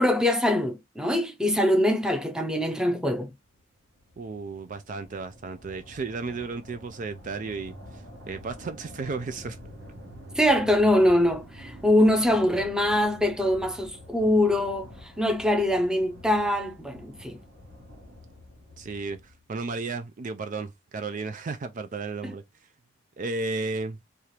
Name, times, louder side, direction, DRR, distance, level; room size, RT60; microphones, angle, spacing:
voice 1, 0.0-3.3 10.3-17.4 22.2-22.3, left 1 dB, 5° right, 0.6 m, -23 dB
sound 1, 3.4-19.5, equal, 60° right, 2.4 m, -47 dB
voice 2, 4.2-9.6 18.8-22.7 23.2-24.0, right 3 dB, 40° right, 0.4 m, -34 dB
4.3 x 2.4 x 3.2 m
head